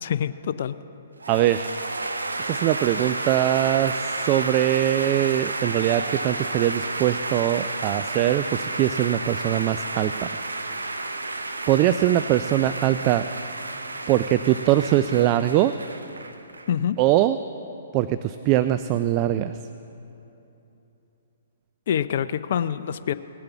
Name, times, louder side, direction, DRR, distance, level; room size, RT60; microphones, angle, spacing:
voice 1, 0.0-0.8 16.7-17.0 21.9-23.1, left 9 dB, 55° left, 13 dB, 0.4 m, -26 dB
sound 1, 1.2-16.7, right 2 dB, 90° right, 0.7 m, -31 dB
voice 2, 1.3-1.7 2.5-10.3 11.7-13.3 14.1-15.8 17.0-17.4 17.9-19.5, right 13 dB, 35° right, 12 dB, 0.3 m, -22 dB
18.5 x 6.7 x 7.0 m, 2.9 s
figure-of-eight pair, 125°, 0 cm